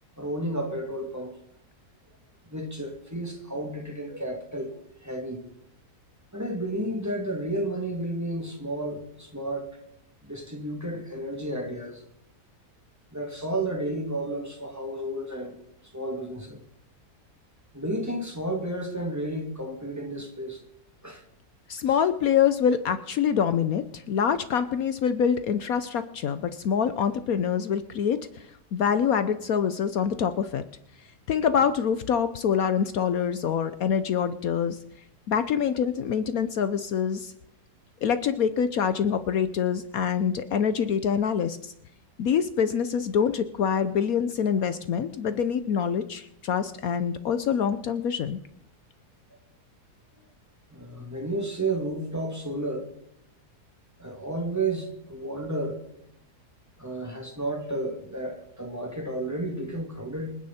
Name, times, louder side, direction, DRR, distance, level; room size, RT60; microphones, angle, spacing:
voice 1, 0.2-1.3 2.5-4.7 5.0-5.5 6.3-9.7 10.2-12.0 13.1-15.6 15.9-16.6 17.7-20.6 21.0-21.2 50.7-52.9 54.0-55.8 56.8-60.4, right 1 dB, 10° right, 2.5 m, -32 dB
voice 2, 21.7-28.5 28.7-30.6 31.3-34.8 35.3-37.3 38.0-41.7 42.2-48.4, left 7 dB, 65° left, 1.2 m, -25 dB
27.0 x 10.0 x 4.3 m
omnidirectional pair, 1.7 m